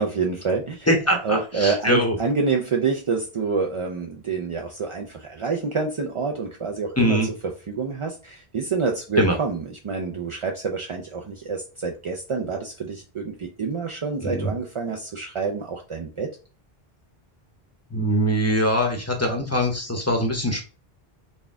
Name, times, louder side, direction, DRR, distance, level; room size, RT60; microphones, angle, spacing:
voice 1, 0.0-0.9 1.2-7.2 7.7-16.3, right 5 dB, 50° right, 1 dB, 0.3 m, -27 dB
voice 2, 0.9-2.2 7.0-7.3 9.2-9.4 14.2-14.5 17.9-20.6, equal, 15° left, 2 dB, 0.7 m, -22 dB
4.3 x 2.3 x 3.4 m, 0.36 s
omnidirectional pair, 1.1 m